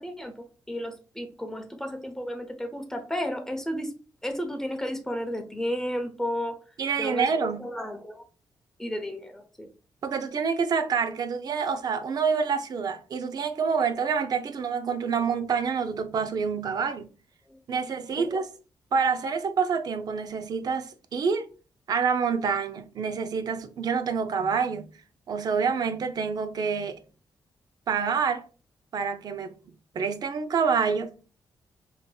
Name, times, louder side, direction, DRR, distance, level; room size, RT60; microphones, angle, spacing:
voice 1, 0.0-3.9 4.2-6.6 7.0-8.2 8.8-9.7 18.2-18.4, equal, 5° left, 0.8 m, -33 dB
voice 2, 6.8-7.7 10.0-17.1 17.7-18.5 18.9-21.5 21.9-24.9 25.3-27.0 27.9-28.5 28.9-31.1, right 6 dB, 60° right, 0.5 m, -27 dB
5.0 x 2.9 x 2.3 m
cardioid pair, 115°, 8 cm